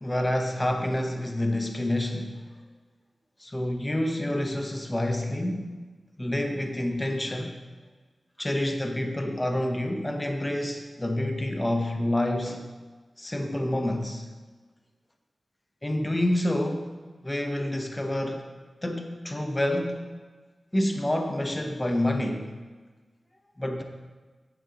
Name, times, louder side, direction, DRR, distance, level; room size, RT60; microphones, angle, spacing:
voice 1, 0.0-2.5 3.4-5.8 6.2-7.6 8.4-12.6 13.2-14.3 15.8-16.9 17.2-18.5 18.8-20.1 20.7-22.5 23.6-23.8, left 1 dB, 20° left, 4 dB, 0.7 m, -28 dB
8.9 x 8.0 x 3.7 m, 1.4 s
wide cardioid pair, 90°, 0 cm